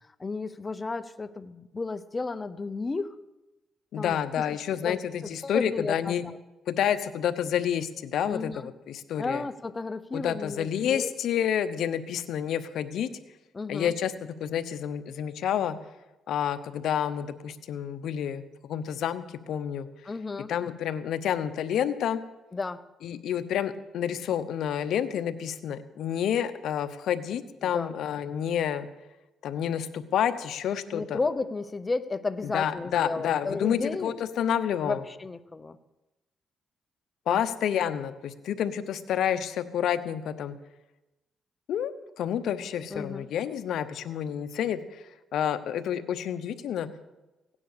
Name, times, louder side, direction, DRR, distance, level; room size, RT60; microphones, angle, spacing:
voice 1, 0.0-3.2 4.0-4.4 4.7-5.0 5.4-6.4 8.2-8.7 9.2-11.1 13.5-13.9 20.1-20.5 22.5-22.8 27.6-27.9 30.9-34.2 34.8-35.8 37.3-37.4 42.9-43.3, left 3 dB, 25° left, 13 dB, 0.7 m, -33 dB
voice 2, 3.9-6.2 6.7-9.4 10.1-13.1 13.7-15.8 16.3-19.9 20.5-22.2 23.0-28.9 29.4-31.2 32.4-35.0 37.3-40.6 41.7-45.0 45.3-46.9, left 9 dB, 75° left, 10 dB, 0.9 m, -29 dB
16.5 x 9.9 x 6.8 m, 1.0 s
cardioid pair, 100°, 0 cm